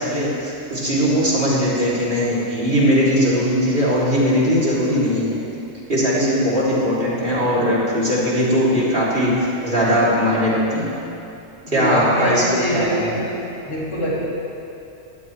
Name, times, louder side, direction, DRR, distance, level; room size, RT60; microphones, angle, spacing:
voice 1, 0.0-5.4 5.9-10.9 11.7-13.0, equal, 45° right, -7 dB, 2.9 m, -19 dB
voice 2, 11.6-13.3 13.6-14.1, equal, 60° left, -8 dB, 3.2 m, -24 dB
16.0 x 12.0 x 3.2 m, 2.8 s
omnidirectional pair, 1.3 m